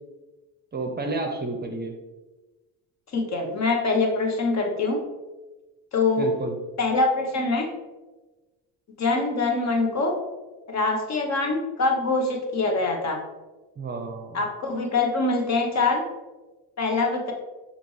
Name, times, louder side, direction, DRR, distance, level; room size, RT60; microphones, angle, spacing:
voice 1, 0.7-1.9 6.2-6.6 13.8-14.4, right 3 dB, 25° right, 3 dB, 0.7 m, -31 dB
voice 2, 3.1-5.0 5.9-6.3 6.8-7.7 9.0-10.1 10.7-13.2 14.3-16.0 16.8-17.3, left 3 dB, 45° left, 1 dB, 1.0 m, -24 dB
6.7 x 2.5 x 3.2 m, 1.2 s
cardioid pair, 90°, 38 cm